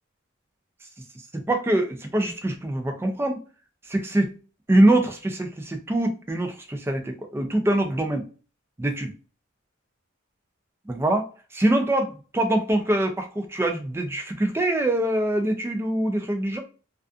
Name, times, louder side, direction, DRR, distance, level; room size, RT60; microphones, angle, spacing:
voice 1, 1.3-3.4 3.9-4.3 4.7-8.3 8.8-9.1 10.9-11.3 11.5-16.6, right 1 dB, 10° right, 0.3 m, -24 dB
2.4 x 2.4 x 2.3 m
head